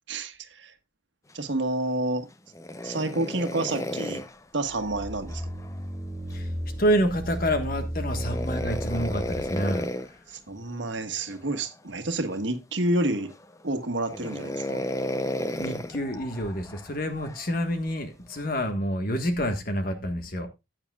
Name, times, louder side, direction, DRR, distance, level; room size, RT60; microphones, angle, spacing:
voice 1, 0.1-0.7 1.3-2.3 2.8-4.2 4.5-5.4 10.3-13.3 13.6-14.8, right 2 dB, 65° right, 1.5 m, -29 dB
sound 1, 2.5-5.8 8.1-10.1 11.3-11.7 12.3-12.4 13.1-13.6 14.1-17.5 18.3-18.7, left 1 dB, 15° left, 0.6 m, -34 dB
sound 2, 4.6-9.7, equal, 15° right, 4.1 m, -34 dB
voice 2, 6.8-9.9 15.6-20.5, equal, 45° left, 1.4 m, -28 dB
15.0 x 8.9 x 2.3 m
head